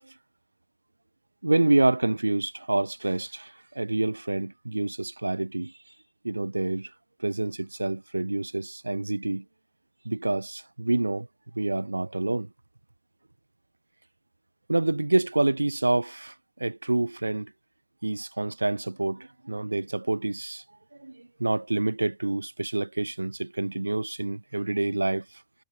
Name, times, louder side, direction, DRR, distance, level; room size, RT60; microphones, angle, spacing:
voice 1, 1.4-5.7 6.2-6.9 7.2-9.4 10.0-11.3 11.5-12.5 14.7-17.5 18.0-20.6 21.0-25.3, right 2 dB, 85° right, 0.5 m, -27 dB
figure-of-eight pair, 90°, 0 cm